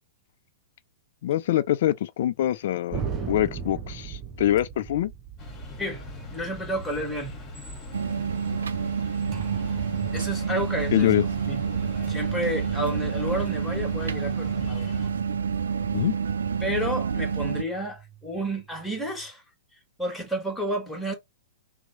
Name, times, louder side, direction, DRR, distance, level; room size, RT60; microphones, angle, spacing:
voice 1, 1.2-3.0 3.3-5.1 10.9-11.2 15.9-16.1, left 13 dB, 60° left, 0.4 m, -24 dB
sound 1, 2.9-8.0 9.3-19.3, right 7 dB, 30° right, 0.7 m, -40 dB
sound 2, 5.4-15.1, left 1 dB, 25° left, 1.4 m, -41 dB
voice 2, 6.3-7.3 10.1-11.1 11.4-11.6 12.1-14.9 16.6-19.4 20.0-21.1, equal, 5° left, 1.6 m, -31 dB
sound 3, 7.9-17.6, right 6 dB, 75° right, 0.4 m, -28 dB
3.0 x 2.1 x 4.0 m
hypercardioid pair, 110°, 0 cm